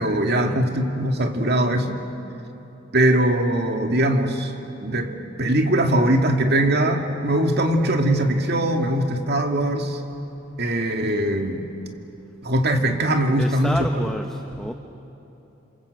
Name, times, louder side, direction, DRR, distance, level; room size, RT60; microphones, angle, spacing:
voice 1, 0.0-2.0 2.9-4.5 4.8-10.0 10.6-11.7 12.4-14.1, right 1 dB, 60° right, 4 dB, 2.1 m, -21 dB
voice 2, 13.4-14.3 14.6-14.7, equal, 5° left, 4 dB, 0.9 m, -28 dB
27.5 x 26.5 x 8.0 m, 3.0 s
head